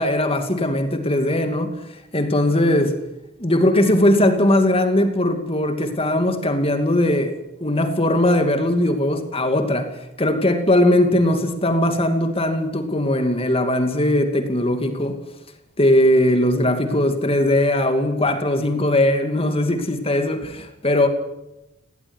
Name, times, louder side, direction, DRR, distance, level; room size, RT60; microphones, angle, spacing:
voice 1, 0.0-1.7 2.1-3.0 3.4-15.2 15.8-21.1, left 1 dB, 30° left, 2.4 m, -19 dB
19.0 x 17.0 x 9.8 m
head